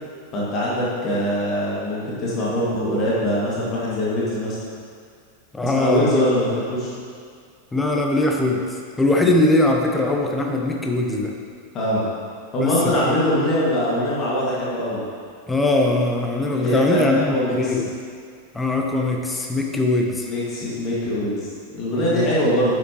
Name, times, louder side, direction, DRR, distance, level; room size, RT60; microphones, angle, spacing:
voice 1, 0.3-4.6 5.6-6.9 11.7-12.0 12.5-15.0 16.5-17.7 20.2-22.7, equal, 35° left, -7 dB, 2.2 m, -23 dB
voice 2, 5.5-6.2 7.7-11.3 12.6-13.2 15.5-17.8 18.5-20.3 22.1-22.3, left 2 dB, 10° left, 1 dB, 1.0 m, -21 dB
9.7 x 7.9 x 3.1 m, 2.2 s
figure-of-eight pair, 90°, 0 cm